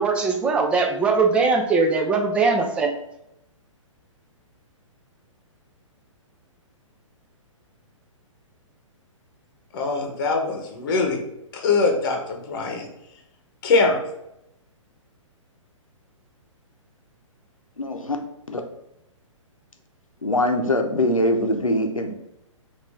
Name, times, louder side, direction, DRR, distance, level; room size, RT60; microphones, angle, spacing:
voice 1, 0.0-2.9, right 4 dB, 5° right, 3 dB, 0.3 m, -20 dB
voice 2, 9.7-11.2 11.5-12.9 13.6-14.0, left 3 dB, 40° left, 3 dB, 0.9 m, -22 dB
voice 3, 17.8-18.2 18.5-18.6 20.2-22.1, left 1 dB, 85° left, 4 dB, 0.8 m, -22 dB
6.0 x 2.6 x 3.4 m, 0.84 s
figure-of-eight pair, 120°, 17 cm